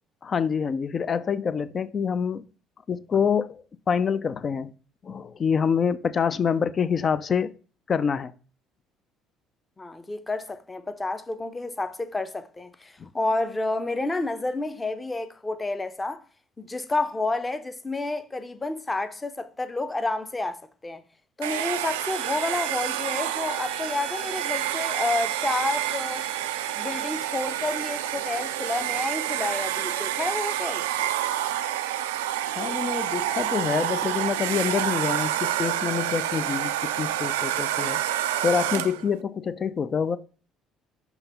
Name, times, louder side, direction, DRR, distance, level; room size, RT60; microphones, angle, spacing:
voice 1, 0.2-2.4 2.9-4.7 5.0-7.5 7.9-8.3 13.0-13.1 32.6-38.0 38.4-40.2, left 6 dB, 40° left, 0.5 m, -26 dB
voice 2, 9.8-16.2 16.6-21.0 21.4-26.3 26.7-30.9, left 2 dB, 20° left, 0.8 m, -30 dB
Domestic sounds home sounds, 21.4-39.1, right 12 dB, 85° right, 0.3 m, -28 dB
sound 1, 22.1-27.1, equal, 20° right, 0.7 m, -43 dB
5.7 x 3.0 x 5.6 m
hypercardioid pair, 65°, 0 cm